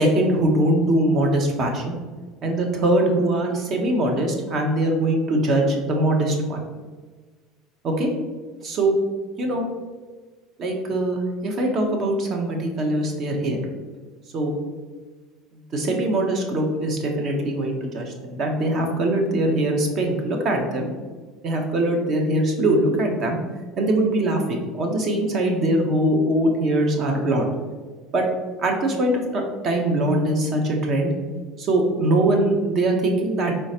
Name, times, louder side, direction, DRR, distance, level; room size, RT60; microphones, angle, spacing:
voice 1, 0.0-2.0 2.4-6.6 7.8-8.1 8.6-9.0 9.4-9.6 10.6-13.6 14.3-14.6 15.7-20.9 21.4-23.4 23.8-27.5 28.1-28.2 28.6-31.1 31.6-33.5, right 1 dB, 45° right, 2 dB, 0.9 m, -22 dB
4.5 x 3.3 x 2.8 m, 1.4 s
supercardioid pair, 110°, 0 cm